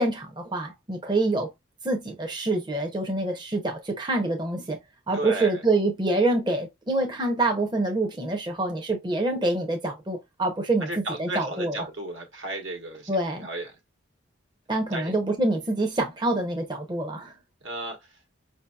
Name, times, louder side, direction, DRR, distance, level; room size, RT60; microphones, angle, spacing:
voice 1, 0.0-1.5 1.8-4.8 5.1-10.9 11.2-11.8 13.1-13.5 14.7-17.3, right 2 dB, 25° right, 0.6 m, -26 dB
voice 2, 5.1-5.6 10.8-13.1 13.4-13.8 14.9-15.1 17.6-18.2, right 1 dB, 70° right, 1.2 m, -34 dB
5.2 x 2.7 x 2.3 m
head